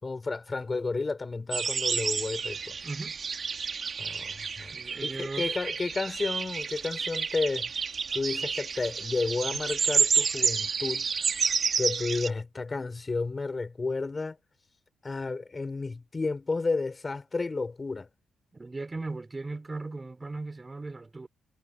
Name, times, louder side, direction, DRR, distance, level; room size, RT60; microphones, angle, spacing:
voice 1, 0.0-2.8 4.0-4.7 5.0-7.7 8.1-11.1 11.8-14.4 15.0-18.1, left 3 dB, 30° left, 6.1 m, -32 dB
sound 1, 1.5-12.3, right 5 dB, 45° right, 3.7 m, -30 dB
voice 2, 2.8-3.2 4.7-5.5 18.5-21.3, right 3 dB, 25° right, 6.2 m, -37 dB
cardioid pair, 75°, 0 cm